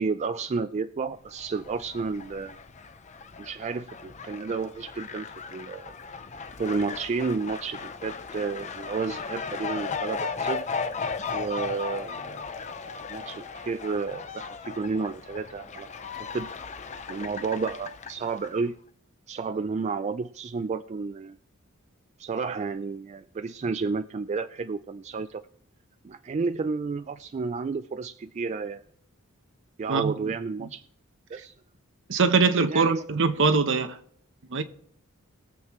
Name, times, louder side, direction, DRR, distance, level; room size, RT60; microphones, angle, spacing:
voice 1, 0.0-2.6 3.4-5.9 6.6-10.7 11.3-12.4 13.1-16.5 17.1-18.8 19.3-21.4 22.2-25.4 26.0-28.8 29.8-30.8 31.3-31.5 32.7-33.0, right 4 dB, 30° right, 0.3 m, -31 dB
Fowl, 1.3-18.6, left 5 dB, 35° left, 0.6 m, -36 dB
voice 2, 32.1-34.0 34.5-34.6, right 4 dB, 60° right, 0.9 m, -22 dB
21.5 x 7.4 x 3.1 m
head